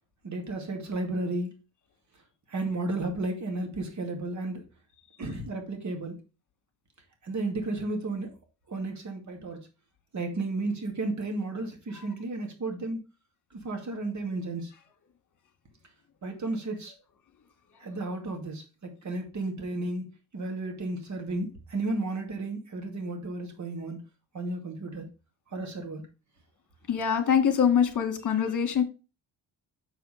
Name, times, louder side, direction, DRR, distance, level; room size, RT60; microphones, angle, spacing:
voice 1, 0.2-1.5 2.5-4.6 5.2-6.1 7.2-8.3 8.7-9.6 10.1-13.0 13.5-14.7 16.2-16.9 17.8-20.0 20.3-24.0 24.3-25.0 25.5-26.0, right 2 dB, 40° right, 4 dB, 2.3 m, -33 dB
voice 2, 26.9-28.8, left 7 dB, 45° left, 7 dB, 1.9 m, -24 dB
6.6 x 4.8 x 5.0 m, 0.31 s
cardioid pair, 105°, 42 cm